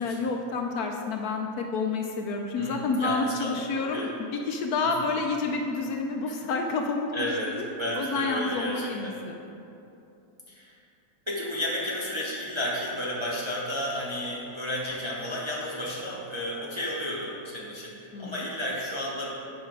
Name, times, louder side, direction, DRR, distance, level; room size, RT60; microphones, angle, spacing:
voice 1, 0.0-7.7 8.0-9.4 18.1-18.5, left 3 dB, 70° left, 3 dB, 1.0 m, -29 dB
voice 2, 2.6-4.1 4.8-5.1 7.1-7.5 7.8-9.2 10.5-10.7 11.3-19.3, left 1 dB, 20° right, -5 dB, 0.8 m, -32 dB
8.3 x 5.5 x 4.7 m, 2.7 s
omnidirectional pair, 1.8 m